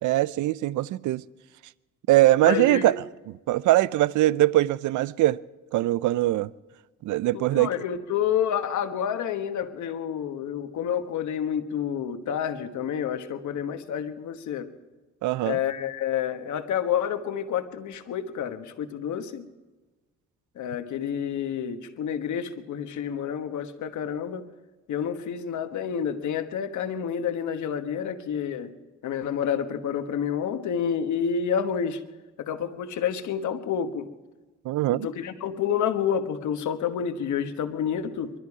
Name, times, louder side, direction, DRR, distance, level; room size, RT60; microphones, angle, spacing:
voice 1, 0.0-1.2 2.1-3.0 3.5-5.4 5.7-6.5 7.0-7.7 15.2-15.6 34.7-35.1, right 16 dB, 75° right, 0.5 m, -22 dB
voice 2, 2.4-2.9 7.3-14.7 15.4-19.4 20.6-24.4 24.9-28.7 29.0-32.0 32.4-34.1 35.0-38.3, left 8 dB, 75° left, 1.4 m, -29 dB
22.5 x 13.0 x 4.8 m
cardioid pair, 90°, 30 cm